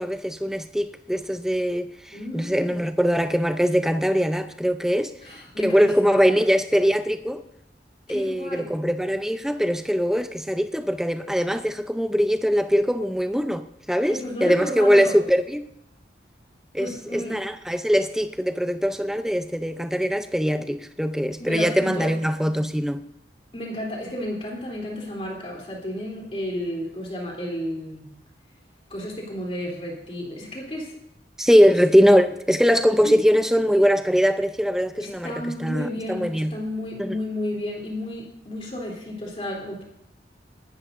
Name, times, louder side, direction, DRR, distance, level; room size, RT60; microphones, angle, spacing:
voice 1, 0.0-1.9 2.3-5.1 5.6-7.4 8.1-13.6 13.9-15.7 16.7-23.0 31.4-36.6 37.0-37.2, equal, 5° right, 0.6 m, -21 dB
voice 2, 2.1-2.7 5.2-6.4 8.1-8.7 14.1-15.2 16.8-17.4 21.4-22.1 23.5-28.1 28.9-31.0 33.0-33.2 35.0-39.8, left 1 dB, 35° left, 3.2 m, -32 dB
22.0 x 12.0 x 2.6 m
head